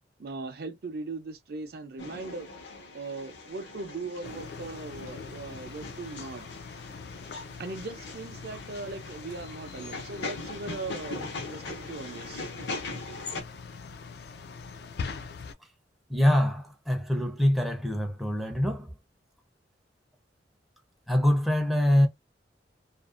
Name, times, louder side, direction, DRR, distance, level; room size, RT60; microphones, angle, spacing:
voice 1, 0.2-2.5 2.9-6.5 7.6-12.4, right 3 dB, 60° right, 0.5 m, -39 dB
sound 1, 2.0-13.4, left 3 dB, 80° left, 0.8 m, -41 dB
sound 2, 4.2-15.5, left 5 dB, 60° left, 0.3 m, -43 dB
voice 2, 16.1-18.9 21.1-22.1, left 1 dB, ahead, 0.5 m, -24 dB
2.5 x 2.1 x 2.4 m
head